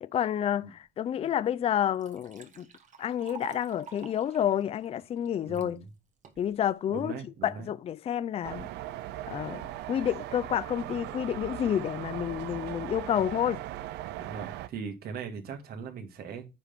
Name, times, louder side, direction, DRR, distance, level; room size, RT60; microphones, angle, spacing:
voice 1, 0.0-2.7 3.0-5.8 6.4-7.1 7.4-8.7 9.3-13.6, left 10 dB, 35° left, 0.4 m, -29 dB
Liquid, 1.2-1.3 1.7-5.7 6.2-6.7, right 6 dB, 45° right, 1.3 m, -49 dB
voice 2, 5.4-5.9 6.9-7.7 14.2-16.5, right 6 dB, 65° right, 1.8 m, -39 dB
sound 1, 8.4-14.7, right 14 dB, 85° right, 0.6 m, -39 dB
9.6 x 3.4 x 5.7 m
cardioid pair, 110°, 17 cm